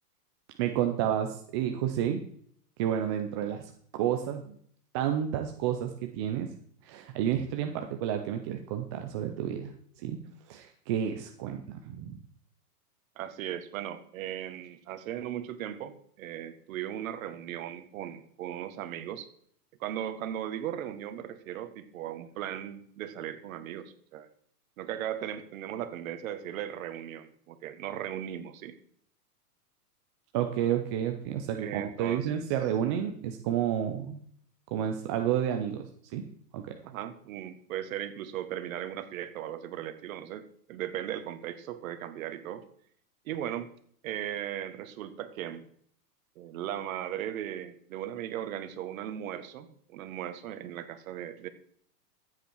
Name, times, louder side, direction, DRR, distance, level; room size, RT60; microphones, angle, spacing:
voice 1, 0.6-2.2 2.8-4.6 4.9-6.5 6.8-9.7 10.0-10.2 10.5-12.2 30.3-34.2 34.7-35.9 36.1-36.2 36.5-36.6, right 10 dB, 20° right, 5 dB, 0.4 m, -30 dB
voice 2, 13.1-19.3 19.8-24.3 24.8-28.7 31.6-32.3 36.8-42.6 43.2-43.7 44.0-45.6 46.3-51.5, right 11 dB, 55° right, 10 dB, 1.6 m, -37 dB
14.0 x 8.2 x 4.5 m, 0.62 s
hypercardioid pair, 145°, 48 cm